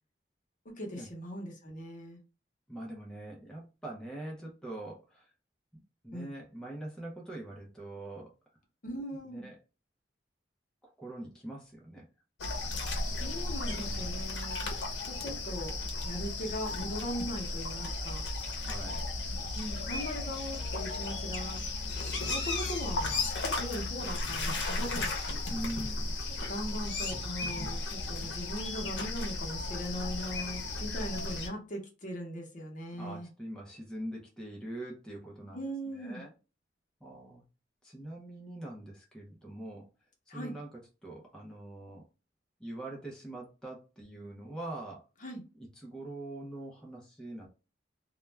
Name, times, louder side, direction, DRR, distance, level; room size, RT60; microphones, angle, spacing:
voice 1, 0.6-2.2 6.1-6.4 8.8-9.5 13.0-15.7 16.0-18.2 19.5-21.6 22.3-23.1 23.5-25.1 26.4-33.3 35.5-36.2 40.3-40.5 45.2-45.4, equal, 45° left, 1 dB, 0.7 m, -39 dB
voice 2, 2.7-5.3 6.0-8.3 9.3-9.6 10.8-12.1 13.7-14.2 18.6-19.1 25.5-26.1 32.9-36.3 37.0-37.4 37.8-39.9 40.3-42.0 42.6-45.0 45.8-47.5, right 1 dB, 5° left, -3 dB, 0.5 m, -43 dB
sound 1, 12.4-31.5, left 2 dB, 85° left, 0.6 m, -35 dB
2.3 x 2.1 x 3.1 m, 0.32 s
head